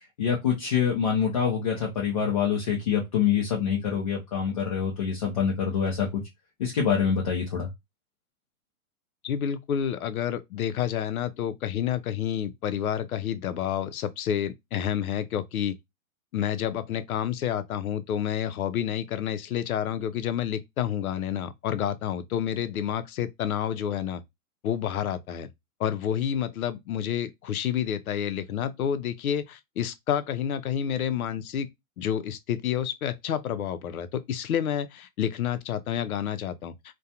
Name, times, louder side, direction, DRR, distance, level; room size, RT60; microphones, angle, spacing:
voice 1, 0.2-6.2 6.6-7.7, left 7 dB, 30° left, 0.4 m, -25 dB
voice 2, 9.2-15.8 16.3-24.2 24.6-25.5 25.8-31.7 32.0-36.7, left 9 dB, 80° left, 0.5 m, -29 dB
2.4 x 2.2 x 2.7 m
hypercardioid pair, 140°, 42 cm